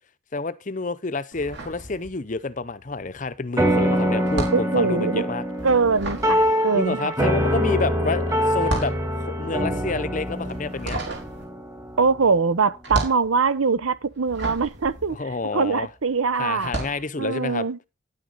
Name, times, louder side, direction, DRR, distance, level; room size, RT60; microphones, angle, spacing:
voice 1, 0.3-5.4 6.7-11.0 15.1-15.9 16.4-17.7, left 3 dB, 35° left, 0.6 m, -29 dB
sound 1, 1.3-2.5 2.8-16.0 16.5-17.1, right 2 dB, 55° right, 3.7 m, -33 dB
sound 2, 3.6-12.3, equal, 15° right, 1.7 m, -24 dB
voice 2, 4.5-5.2 5.6-7.1 12.0-15.2 15.5-16.7 17.2-17.8, right 5 dB, 80° right, 0.8 m, -22 dB
10.5 x 9.3 x 4.0 m
head